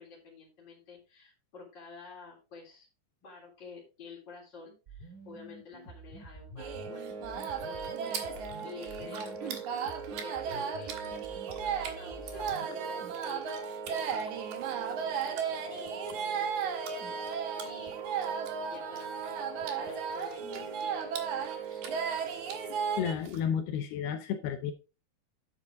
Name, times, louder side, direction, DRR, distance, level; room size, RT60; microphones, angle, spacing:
voice 1, 0.0-2.9 3.2-7.1 7.6-17.3 17.6-18.0 18.2-19.2 19.7-22.1, left 4 dB, 25° left, 3.8 m, -51 dB
sound 1, 4.9-20.9, right 3 dB, 35° right, 1.7 m, -48 dB
sound 2, 6.6-23.1, right 6 dB, 90° right, 1.6 m, -35 dB
sound 3, 7.2-23.4, right 8 dB, 60° right, 2.8 m, -48 dB
voice 2, 22.7-24.7, left 8 dB, 75° left, 2.6 m, -32 dB
11.0 x 7.0 x 3.7 m
omnidirectional pair, 5.4 m